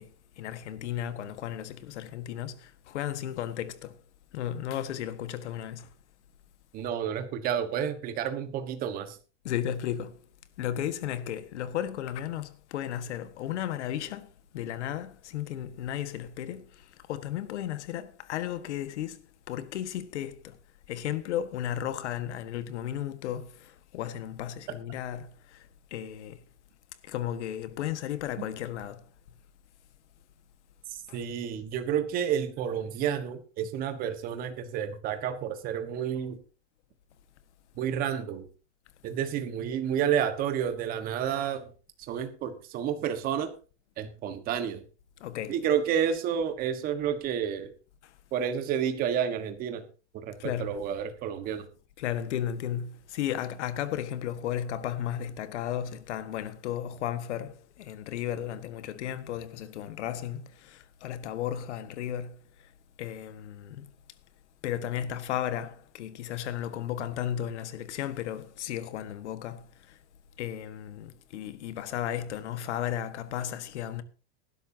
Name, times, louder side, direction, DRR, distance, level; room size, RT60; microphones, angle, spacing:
voice 1, 0.0-4.0 4.3-5.9 9.4-10.2 10.6-20.6 20.9-26.4 27.0-29.1 31.1-31.2 45.2-45.6 48.0-48.1 50.4-50.8 52.0-62.7 63.0-63.9 64.6-70.0 70.4-74.0, left 10 dB, 90° left, 1.6 m, -34 dB
voice 2, 6.7-9.2 28.4-28.5 30.9-36.4 37.8-38.4 39.0-41.7 42.1-43.5 44.0-44.8 45.5-47.7 48.3-49.8 50.2-51.7, right 8 dB, 25° right, 1.4 m, -30 dB
18.5 x 11.5 x 2.8 m
supercardioid pair, 175°, 34 cm